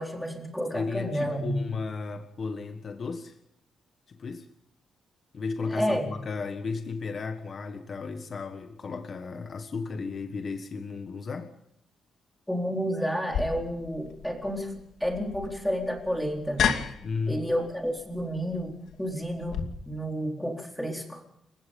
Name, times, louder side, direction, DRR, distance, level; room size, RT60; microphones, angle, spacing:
voice 1, 0.0-1.5 5.7-6.1 12.5-16.7 17.3-19.6 19.8-21.2, equal, 5° left, 1 dB, 4.2 m, -30 dB
voice 2, 0.7-3.4 4.1-4.5 5.3-11.5 17.0-17.4, left 4 dB, 40° left, 7 dB, 1.5 m, -34 dB
sound 1, 13.3-19.6, left 7 dB, 80° left, 2.5 m, -33 dB
29.5 x 16.5 x 5.4 m, 0.75 s
wide cardioid pair, 155°, 0 cm